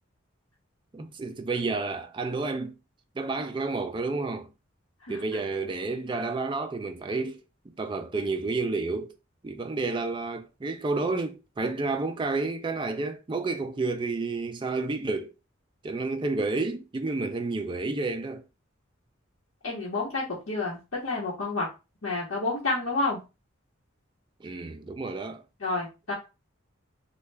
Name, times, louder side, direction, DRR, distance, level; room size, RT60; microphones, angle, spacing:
voice 1, 0.9-2.7 3.2-4.5 5.1-7.4 7.7-9.1 9.4-15.3 15.8-18.4 24.4-25.4, right 3 dB, 25° right, 0.3 m, -30 dB
voice 2, 19.6-20.8 21.0-21.7 22.0-23.2 25.6-26.1, left 3 dB, 80° left, 1.0 m, -29 dB
3.1 x 2.3 x 3.2 m
head